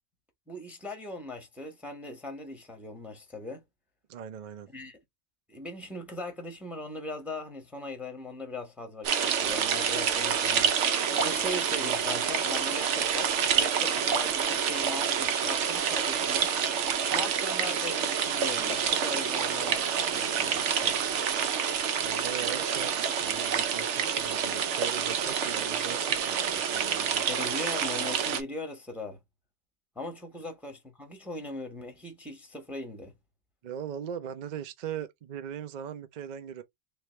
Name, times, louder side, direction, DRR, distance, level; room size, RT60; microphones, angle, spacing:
voice 1, 0.5-3.6 4.7-5.0 5.5-16.5 17.1-21.0 27.3-29.2 29.9-33.1, left 2 dB, ahead, 0.9 m, -39 dB
voice 2, 4.1-4.7 22.0-27.2 33.6-36.6, right 9 dB, 50° right, 0.6 m, -39 dB
sound 1, 9.0-28.4, right 7 dB, 75° right, 1.0 m, -28 dB
3.3 x 3.3 x 3.0 m
omnidirectional pair, 1.2 m